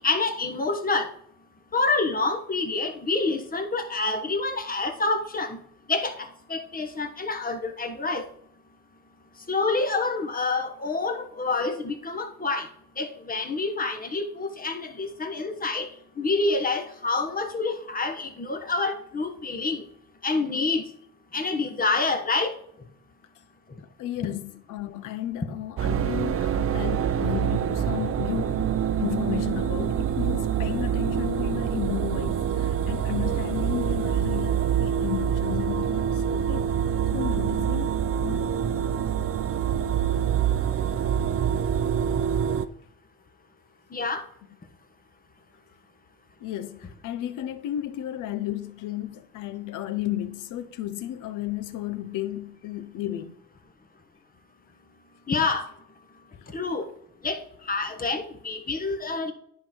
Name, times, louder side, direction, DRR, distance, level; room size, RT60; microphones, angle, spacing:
voice 1, 0.0-1.1 1.7-5.6 5.9-6.1 6.5-8.2 9.5-12.6 13.0-15.9 16.2-19.8 20.2-20.8 21.3-22.5 43.9-44.2 55.3-55.6 56.5-56.8 57.2-57.4 57.7-59.3, left 3 dB, 30° left, 1.2 m, -27 dB
voice 2, 24.0-36.7 37.1-38.5 39.5-39.6 46.4-53.3, left 13 dB, 90° left, 0.7 m, -33 dB
sound 1, 25.8-42.7, right 9 dB, 50° right, 0.5 m, -26 dB
10.0 x 3.9 x 4.3 m
cardioid pair, 90°, 30 cm